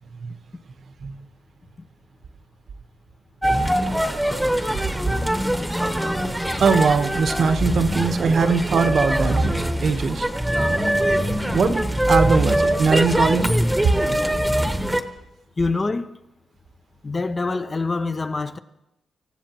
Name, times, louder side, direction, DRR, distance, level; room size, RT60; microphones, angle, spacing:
sound 1, 3.4-15.0, right 1 dB, 5° right, 1.1 m, -22 dB
voice 1, 6.6-9.6 9.8-10.2 11.5-11.8 12.1-13.5, right 5 dB, 55° right, 1.0 m, -20 dB
voice 2, 15.6-16.2 17.0-18.6, left 3 dB, 30° left, 0.7 m, -25 dB
27.0 x 15.5 x 3.0 m
cardioid pair, 110°, 0 cm